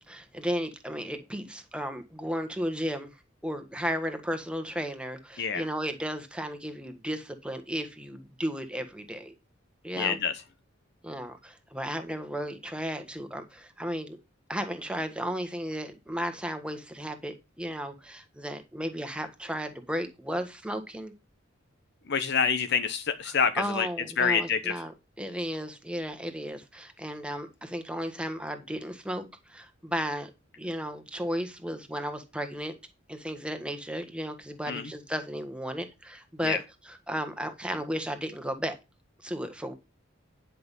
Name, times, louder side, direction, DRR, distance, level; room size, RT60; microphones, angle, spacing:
voice 1, 0.0-3.1 3.4-9.3 9.8-10.2 11.0-14.2 14.5-21.1 23.3-24.9 25.2-30.3 30.6-32.7 33.1-36.6 36.8-38.8 39.2-39.7, equal, 5° right, 7 dB, 1.5 m, -34 dB
voice 2, 10.0-10.3 22.1-23.9 24.2-24.8 34.7-34.8 36.4-36.6, left 6 dB, 60° left, 10 dB, 1.0 m, -26 dB
10.5 x 5.9 x 5.4 m, 0.25 s
head